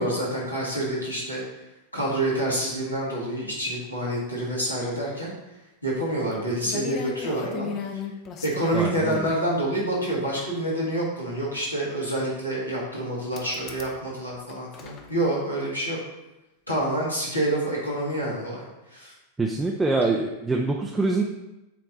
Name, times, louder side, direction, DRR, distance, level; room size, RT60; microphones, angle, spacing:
voice 1, 0.0-1.4 1.9-5.3 5.8-7.7 7.9-8.0 8.4-16.0 16.7-19.1, right 1 dB, 85° left, -5 dB, 2.1 m, -27 dB
sound 1, 6.3-6.4 6.6-9.4 10.4-10.5 13.3-14.0 14.3-15.1, left 6 dB, 35° left, 0.8 m, -36 dB
voice 2, 8.7-9.3 19.4-21.2, right 3 dB, 10° right, 0 dB, 0.5 m, -25 dB
7.9 x 3.4 x 4.0 m, 0.96 s
figure-of-eight pair, 90°, 0 cm